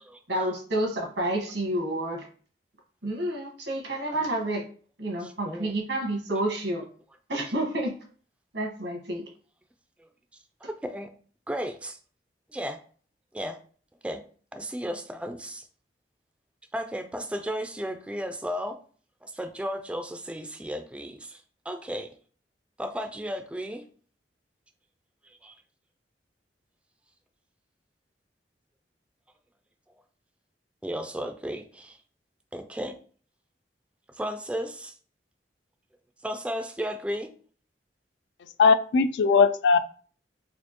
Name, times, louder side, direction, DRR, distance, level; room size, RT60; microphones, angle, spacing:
voice 1, 0.3-2.2 3.0-4.6 5.0-6.8 7.3-8.0 8.5-9.2, right 1 dB, 90° right, 1.3 m, -29 dB
voice 2, 5.2-5.7 10.6-11.1 11.5-12.0 12.5-12.8 13.3-13.6 14.0-14.2 14.5-15.7 16.7-18.8 19.2-22.1 22.8-23.8 25.2-25.5 30.8-32.0 32.5-33.0 34.1-34.9 36.2-37.3, equal, 5° right, 0.3 m, -34 dB
voice 3, 38.6-39.8, left 5 dB, 80° left, 0.3 m, -19 dB
4.2 x 2.5 x 2.9 m
head